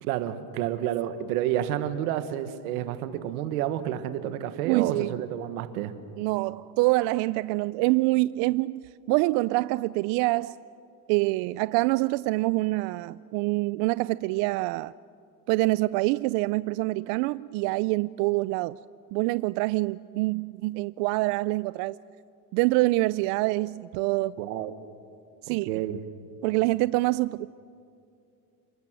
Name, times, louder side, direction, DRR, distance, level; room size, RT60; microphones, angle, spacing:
voice 1, 0.0-5.9 24.4-24.7 25.5-26.0, right 11 dB, 90° right, 11 dB, 1.5 m, -30 dB
voice 2, 4.6-5.1 6.2-10.5 11.1-14.9 15.5-18.8 19.1-22.0 22.5-24.4 25.4-25.7 26.4-27.5, right 21 dB, 60° right, 17 dB, 0.5 m, -25 dB
29.0 x 20.0 x 6.2 m, 2.5 s
supercardioid pair, 120°, 43 cm